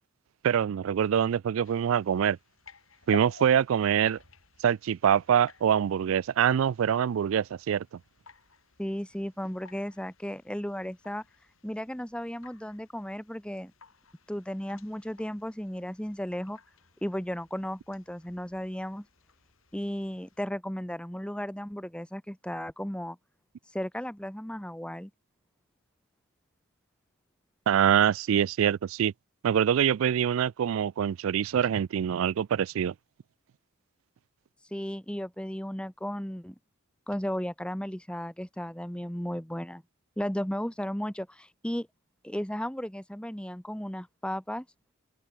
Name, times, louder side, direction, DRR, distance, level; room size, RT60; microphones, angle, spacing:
voice 1, 0.4-2.4 3.1-4.2 4.6-7.9 27.7-29.1 29.4-32.9, right 8 dB, 70° right, 0.3 m, -25 dB
sound 1, 1.6-20.4, left 3 dB, 75° left, 5.1 m, -52 dB
voice 2, 8.8-11.2 11.6-13.7 14.3-16.6 17.0-19.1 19.7-23.2 23.7-25.1 34.7-36.5 37.1-39.8 40.2-41.9 42.2-44.6, equal, 5° left, 1.3 m, -35 dB
open air
head